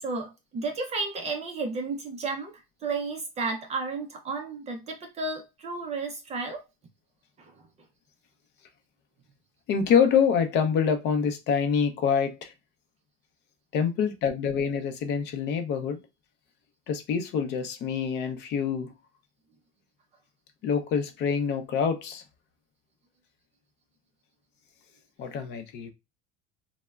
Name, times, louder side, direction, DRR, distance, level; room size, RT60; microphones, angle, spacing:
voice 1, 0.0-2.5 2.8-6.6 7.4-7.7, right 3 dB, 25° right, 0.4 m, -32 dB
voice 2, 9.7-12.5 13.7-16.0 16.9-18.9 20.6-22.2 25.2-25.9, left 7 dB, 40° left, 0.5 m, -26 dB
3.2 x 2.0 x 2.2 m
cardioid pair, 150°, 29 cm